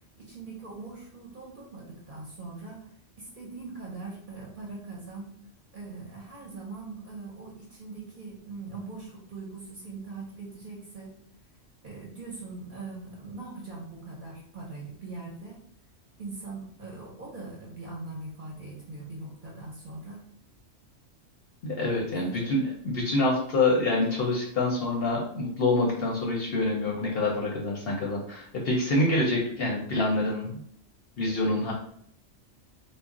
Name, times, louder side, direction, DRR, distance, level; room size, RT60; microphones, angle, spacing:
voice 1, 0.2-2.9 3.2-5.3 5.7-11.1 11.8-15.6 16.2-20.2 22.1-22.5, right 3 dB, 45° right, -3 dB, 0.8 m, -41 dB
voice 2, 21.6-30.5 31.2-31.7, left 2 dB, 60° left, -2 dB, 0.7 m, -26 dB
2.3 x 2.0 x 3.6 m, 0.65 s
omnidirectional pair, 1.3 m